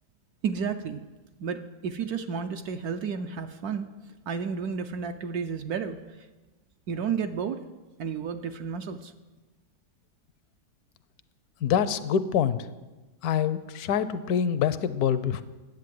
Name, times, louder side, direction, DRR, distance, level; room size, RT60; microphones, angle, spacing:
voice 1, 0.4-1.0 1.4-3.9 4.3-6.3 6.9-7.6 8.0-9.1, right 6 dB, 70° right, 7 dB, 1.1 m, -32 dB
voice 2, 11.6-12.6 13.2-15.4, left 8 dB, 70° left, 14 dB, 1.1 m, -25 dB
10.5 x 8.3 x 7.6 m, 1.2 s
omnidirectional pair, 1.8 m